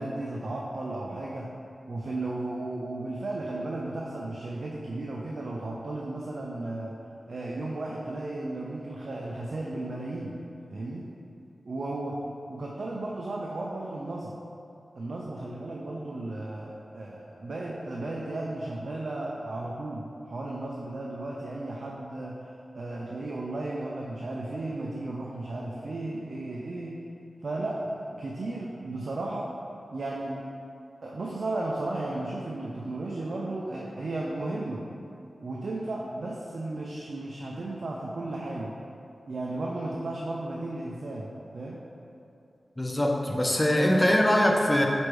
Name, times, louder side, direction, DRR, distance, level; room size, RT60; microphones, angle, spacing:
voice 1, 0.0-1.5 1.9-6.9 7.3-10.3 10.7-11.1 11.7-12.2 12.5-14.3 15.0-22.5 22.7-27.0 27.4-29.5 29.9-30.4 31.0-34.8 35.4-38.7 39.3-41.8 44.0-44.1, right 2 dB, 70° right, -3 dB, 0.3 m, -34 dB
voice 2, 42.8-44.9, left 1 dB, 20° left, 1 dB, 0.5 m, -22 dB
4.4 x 2.5 x 3.1 m, 2.6 s
cardioid pair, 40°, 0 cm